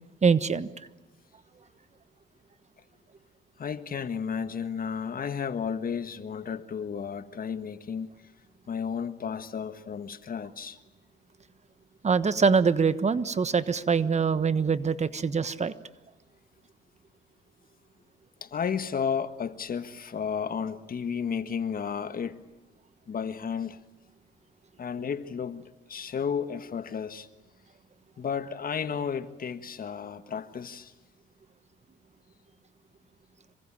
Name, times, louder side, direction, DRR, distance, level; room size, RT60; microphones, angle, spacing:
voice 1, 0.2-0.7 12.0-15.7, right 5 dB, 35° right, 1.2 m, -24 dB
voice 2, 3.6-8.1 8.7-10.8 18.4-22.5 23.1-23.8 24.8-27.3 28.2-30.9, left 7 dB, 45° left, 1.6 m, -33 dB
26.5 x 24.0 x 9.0 m
cardioid pair, 90°, 20 cm